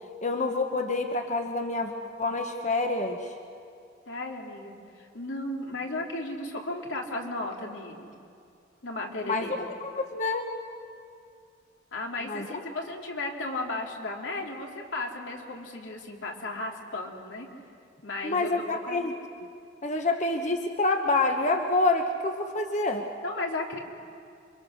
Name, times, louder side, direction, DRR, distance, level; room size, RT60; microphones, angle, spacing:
voice 1, 0.2-1.9 2.2-3.3 9.2-10.5 12.3-12.5 18.2-19.5 19.8-23.1, left 2 dB, 40° left, 4 dB, 1.1 m, -27 dB
voice 2, 4.1-8.1 8.8-9.5 11.9-17.5 18.0-19.0 23.2-23.8, left 2 dB, 85° left, 0 dB, 2.9 m, -35 dB
28.5 x 24.0 x 6.4 m, 2.4 s
head